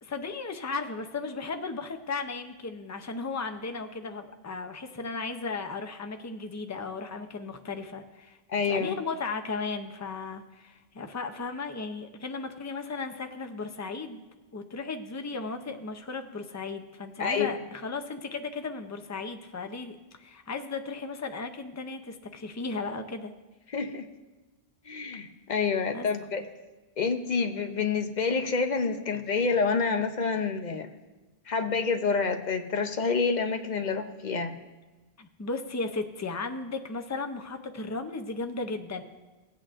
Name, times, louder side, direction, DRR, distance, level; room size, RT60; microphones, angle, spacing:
voice 1, 0.0-8.4 8.7-14.2 14.5-23.3 25.9-26.1 35.2-39.0, left 4 dB, 25° left, 6 dB, 0.4 m, -35 dB
voice 2, 8.5-9.0 17.2-17.5 23.7-24.1 24.9-26.4 27.0-30.9 31.5-34.6, left 5 dB, 45° left, 6 dB, 0.7 m, -28 dB
16.5 x 8.5 x 2.5 m, 1.2 s
omnidirectional pair, 1.1 m